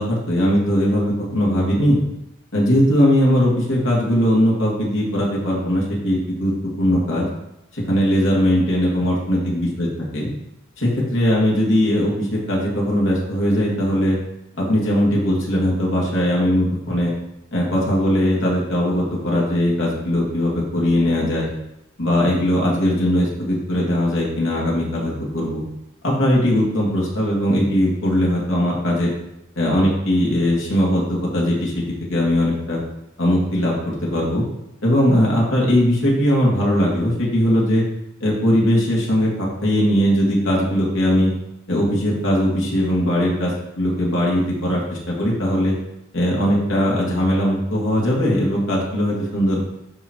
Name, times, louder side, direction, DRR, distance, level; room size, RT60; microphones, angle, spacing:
voice 1, 0.0-2.0 2.5-6.5 6.8-7.3 7.7-10.3 10.8-14.2 14.6-17.1 17.5-21.5 22.0-25.6 26.0-29.1 29.6-31.8 32.1-32.8 33.2-34.5 34.8-37.8 38.2-41.3 41.7-45.8 46.1-49.6, equal, 80° left, -4 dB, 2.2 m, -19 dB
11.0 x 4.1 x 3.1 m, 0.85 s
head